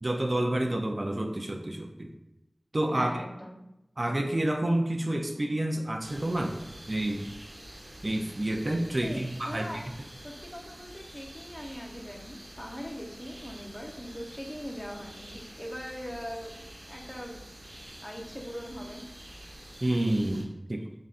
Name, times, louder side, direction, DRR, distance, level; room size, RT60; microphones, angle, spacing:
voice 1, 0.0-2.1 2.7-3.1 4.0-6.6 6.9-7.3 8.0-9.8 19.8-20.9, right 1 dB, 50° right, 4 dB, 0.5 m, -29 dB
voice 2, 2.9-3.6 9.0-9.9 10.2-16.6 16.9-17.4 18.0-19.0, equal, 20° left, 0 dB, 0.8 m, -41 dB
sound 1, 6.0-20.4, right 1 dB, 85° right, 0.9 m, -47 dB
5.5 x 3.6 x 2.5 m, 0.91 s
wide cardioid pair, 40°, 0 cm